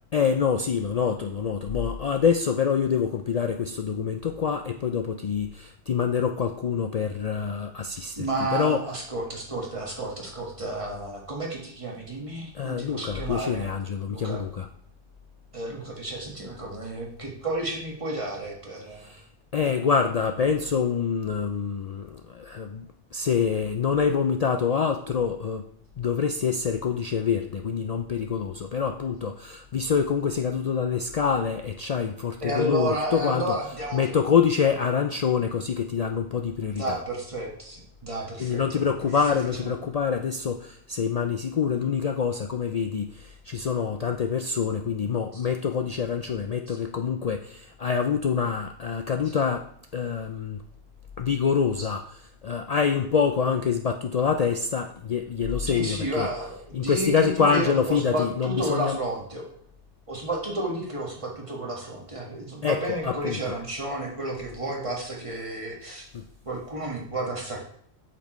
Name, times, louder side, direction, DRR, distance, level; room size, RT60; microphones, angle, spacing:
voice 1, 0.1-8.8 12.5-14.7 19.0-19.2 19.5-25.7 26.0-33.6 33.9-37.0 38.4-50.6 51.2-52.1 52.4-56.3 56.7-59.0 62.6-63.4 66.1-66.3, left 6 dB, 65° left, 5 dB, 0.3 m, -26 dB
voice 2, 8.1-13.7 14.1-14.4 15.5-19.1 19.6-19.7 32.4-34.2 36.7-38.8 39.3-39.4 45.3-45.4 46.7-46.8 49.3-49.4 51.8-51.9 55.6-59.5 60.1-66.1 66.4-67.6, right 1 dB, 30° right, -2 dB, 1.7 m, -31 dB
8.3 x 6.9 x 3.1 m, 0.64 s
omnidirectional pair, 1.2 m